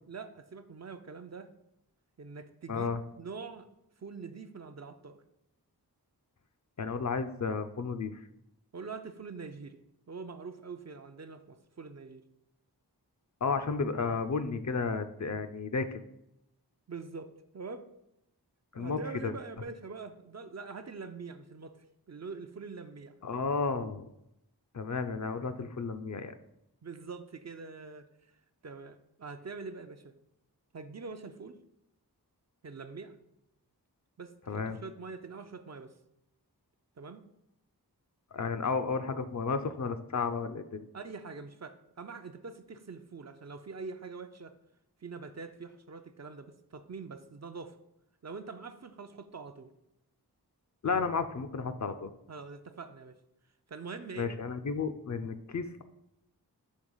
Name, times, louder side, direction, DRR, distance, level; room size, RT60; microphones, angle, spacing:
voice 1, 0.1-1.5 2.2-2.9 3.2-3.7 4.0-5.2 8.7-9.8 10.1-12.2 16.9-17.9 18.8-23.2 26.8-28.3 28.6-30.2 30.7-31.6 32.6-33.2 34.2-35.9 37.0-37.2 40.9-44.5 45.0-47.8 48.2-49.7 52.3-53.1 53.7-54.3, right 4 dB, 45° right, 8 dB, 0.5 m, -44 dB
voice 2, 2.7-3.0 6.8-8.2 13.4-16.0 18.7-19.3 23.2-24.1 24.7-26.3 34.5-34.8 38.3-40.9 50.8-52.1 54.2-55.8, left 4 dB, 45° left, 9 dB, 0.5 m, -32 dB
6.4 x 2.9 x 5.5 m, 0.82 s
wide cardioid pair, 45°, 40 cm